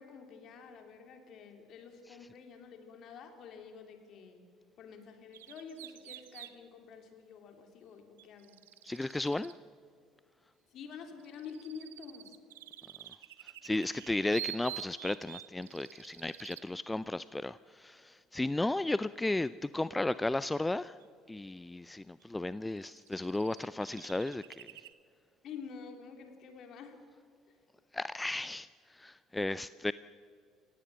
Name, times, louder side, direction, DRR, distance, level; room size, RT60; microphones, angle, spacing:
voice 1, 0.0-4.4 4.8-8.6 10.7-12.3 25.4-27.0 27.5-27.6, left 6 dB, 55° left, 5 dB, 3.1 m, -48 dB
sound 1, 5.3-6.5 8.2-9.6 10.9-16.7 21.0-21.1 22.2-22.3 22.7-24.9, right 14 dB, 75° right, 0.7 m, -47 dB
voice 2, 8.8-9.5 13.4-21.0 21.3-24.7 27.9-29.9, left 2 dB, 10° left, 16 dB, 0.4 m, -34 dB
28.5 x 16.0 x 6.3 m, 2.2 s
figure-of-eight pair, 55°, 0 cm